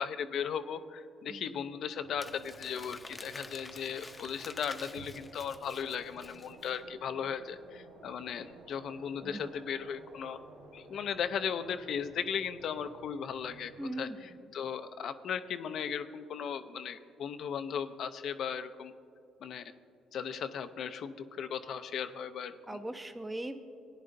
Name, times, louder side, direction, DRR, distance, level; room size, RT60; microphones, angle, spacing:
voice 1, 0.0-10.4 10.7-13.7 14.0-14.1 14.5-18.9 19.4-19.7 20.1-22.8, left 7 dB, 65° left, 10 dB, 0.5 m, -37 dB
voice 2, 1.3-1.7 9.2-9.5 13.8-14.4 22.7-23.6, right 1 dB, 15° right, 7 dB, 0.7 m, -40 dB
sound 1, 2.0-14.0, right 2 dB, 90° right, 1.1 m, -55 dB
Crumpling crinkling, 2.2-6.8, left 3 dB, 25° left, 0.7 m, -49 dB
sound 2, 4.9-5.9, right 5 dB, 75° right, 0.5 m, -53 dB
16.0 x 10.0 x 2.6 m, 2.6 s
supercardioid pair, 65°, 0 cm